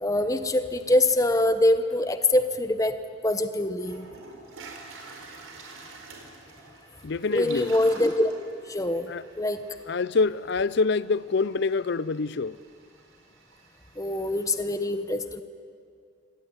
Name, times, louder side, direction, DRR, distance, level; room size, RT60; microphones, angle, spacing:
voice 1, 0.0-4.1 7.3-8.3 8.7-9.1 9.4-9.6 14.0-15.4, left 1 dB, 15° left, 1.0 m, -24 dB
Toilet flush, 3.3-3.4 3.8-14.6, right 3 dB, 85° right, 4.6 m, -47 dB
voice 2, 7.0-7.7 9.1-9.2 9.9-12.6, left 4 dB, 55° left, 0.5 m, -26 dB
25.5 x 18.0 x 9.7 m
head